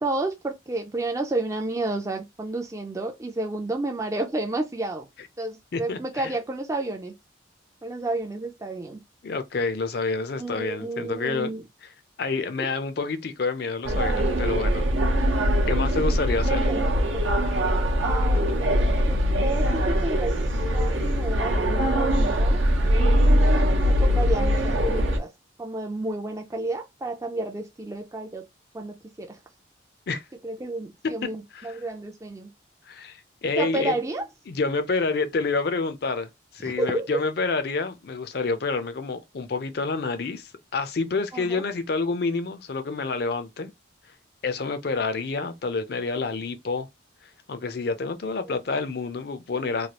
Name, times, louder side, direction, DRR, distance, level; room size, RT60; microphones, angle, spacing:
voice 1, 0.0-5.1 5.4-7.1 7.8-9.0 10.4-11.6 16.3-17.3 18.0-20.4 20.7-22.6 23.8-25.3 25.6-28.4 28.7-29.4 30.4-32.5 33.6-34.3 36.6-37.1 41.3-41.6, right 2 dB, 15° right, 0.3 m, -31 dB
voice 2, 5.7-6.3 9.2-11.5 12.2-14.9 15.7-16.7 30.1-30.2 31.5-31.8 32.9-33.9 34.5-36.3 36.5-43.7 44.4-46.9 47.5-49.9, left 4 dB, 55° left, 0.5 m, -28 dB
sound 1, 13.8-25.2, equal, 85° right, 0.7 m, -22 dB
3.1 x 2.3 x 2.8 m
head